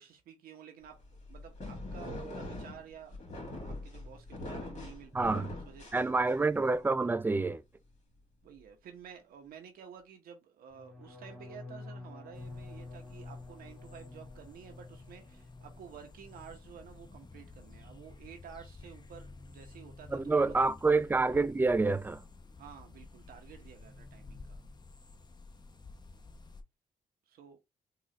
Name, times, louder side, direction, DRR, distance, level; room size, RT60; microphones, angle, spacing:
voice 1, 0.0-3.1 3.4-6.0 7.0-7.2 8.4-20.6 22.6-24.6 27.3-27.6, right 8 dB, 85° right, 0.8 m, -52 dB
sound 1, 1.0-6.6, left 1 dB, 50° left, 2.0 m, -42 dB
voice 2, 5.1-5.5 5.9-7.6 20.1-22.2, right 3 dB, 15° right, 0.3 m, -27 dB
sound 2, 10.7-16.6 16.9-17.4 17.7-18.1, left 3 dB, 5° left, 2.1 m, -49 dB
sound 3, 12.3-26.6, left 3 dB, 30° left, 0.8 m, -52 dB
3.8 x 2.4 x 3.1 m
supercardioid pair, 60°, 15 cm